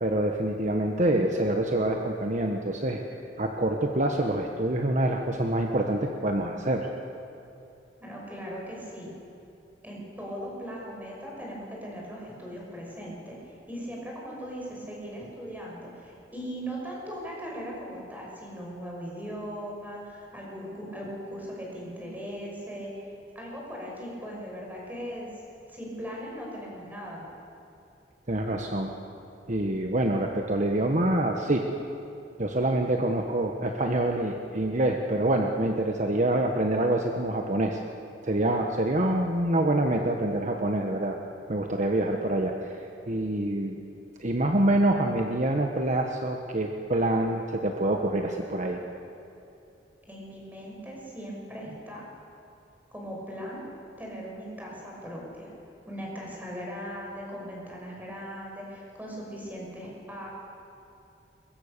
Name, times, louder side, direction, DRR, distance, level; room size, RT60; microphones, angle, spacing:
voice 1, 0.0-3.0 3.4-6.9 28.3-28.9 29.5-31.6 32.4-37.8 38.2-41.2 41.5-42.7 43.1-43.8 44.2-48.8, right 1 dB, 45° right, 3 dB, 1.3 m, -26 dB
voice 2, 8.0-9.1 9.8-22.9 23.3-25.3 25.7-27.3 50.1-52.1 52.9-53.6 54.0-55.5 55.9-60.3, equal, 10° right, -3 dB, 6.1 m, -39 dB
22.5 x 22.0 x 6.8 m, 2.8 s
head